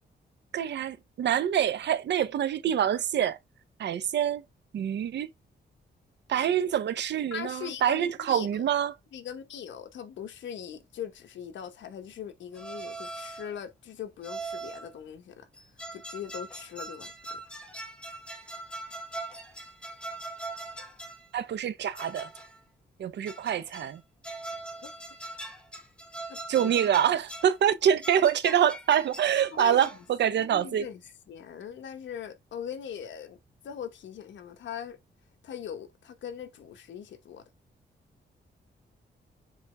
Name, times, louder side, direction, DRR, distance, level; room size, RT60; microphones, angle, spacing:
voice 1, 0.5-3.4 3.8-4.4 4.7-5.3 6.3-8.9 21.3-22.3 23.0-24.0 26.5-30.8, right 9 dB, 70° right, 0.8 m, -26 dB
voice 2, 7.3-8.7 9.1-15.5 15.9-17.4 24.8-24.9 26.3-26.7 29.5-29.9 30.4-31.0 31.3-33.4 33.6-35.0 35.4-37.5, left 8 dB, 85° left, 1.2 m, -40 dB
sound 1, 12.5-13.6 14.2-14.9 15.5-21.3 22.0-22.6 23.3-24.0 24.2-27.6 28.0-30.1, right 2 dB, 5° left, 1.3 m, -41 dB
7.1 x 4.0 x 3.4 m
wide cardioid pair, 150°, 19 cm